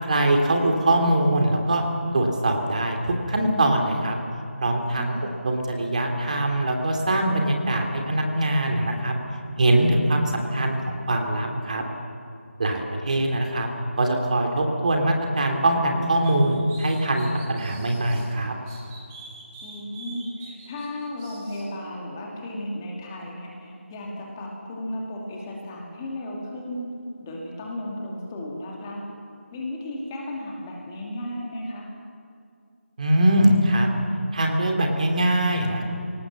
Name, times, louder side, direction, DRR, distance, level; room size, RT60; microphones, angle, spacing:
voice 1, 0.0-1.8 2.1-4.1 4.6-5.1 5.4-9.1 9.6-11.8 12.6-13.7 14.0-18.5 33.0-33.9 34.3-35.8, right 1 dB, 35° right, 2 dB, 2.8 m, -22 dB
voice 2, 4.9-5.3 19.6-26.9 27.2-29.0 29.5-31.9, left 1 dB, 15° left, -2 dB, 2.5 m, -34 dB
sound 1, 16.2-18.3 18.7-21.6, right 3 dB, 10° right, 2.2 m, -45 dB
24.5 x 19.0 x 7.5 m, 2.3 s
figure-of-eight pair, 165°, 7 cm